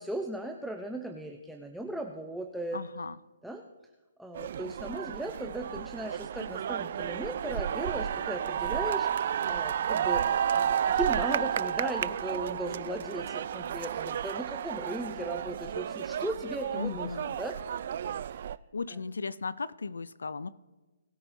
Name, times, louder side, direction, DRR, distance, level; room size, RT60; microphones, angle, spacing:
voice 1, 0.0-2.8 3.4-3.6 4.2-10.2 10.5-17.6 18.9-19.0, right 1 dB, ahead, 2 dB, 0.6 m, -37 dB
voice 2, 2.7-3.2 16.7-17.3 18.7-20.5, left 4 dB, 90° left, 18 dB, 0.4 m, -36 dB
sound 1, 4.3-18.6, right 9 dB, 50° right, 0.3 m, -32 dB
20.0 x 9.5 x 2.7 m, 1.2 s
hypercardioid pair, 155°, 0 cm